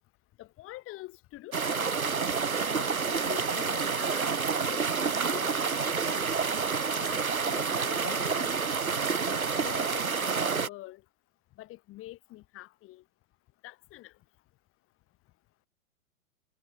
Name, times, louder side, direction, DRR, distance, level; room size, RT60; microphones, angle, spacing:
voice 1, 0.4-2.2 2.8-4.4 4.6-6.3 7.0-8.6 9.1-11.0 11.6-13.0 13.6-14.1, left 17 dB, 30° left, 6.8 m, -46 dB
sound 1, 1.5-10.7, right 5 dB, 85° right, 1.6 m, -29 dB
figure-of-eight pair, 105°, 41 cm